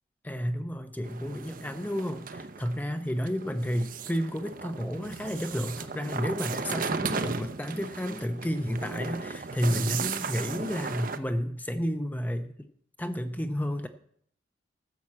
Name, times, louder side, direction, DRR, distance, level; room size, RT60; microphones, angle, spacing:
voice 1, 0.2-12.7 13.0-13.9, equal, 10° left, 8 dB, 0.6 m, -31 dB
sound 1, 1.0-11.2, right 4 dB, 45° right, 0.7 m, -36 dB
14.0 x 6.6 x 7.4 m, 0.67 s
head